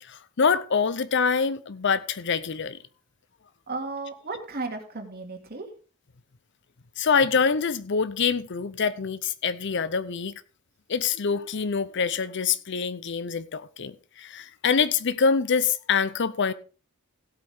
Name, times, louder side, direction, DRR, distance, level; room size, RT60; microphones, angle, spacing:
voice 1, 0.0-2.8 7.0-10.3 10.9-16.5, left 5 dB, 60° left, 0.7 m, -25 dB
voice 2, 3.7-5.7, right 3 dB, 50° right, 2.4 m, -34 dB
16.5 x 8.3 x 3.6 m
head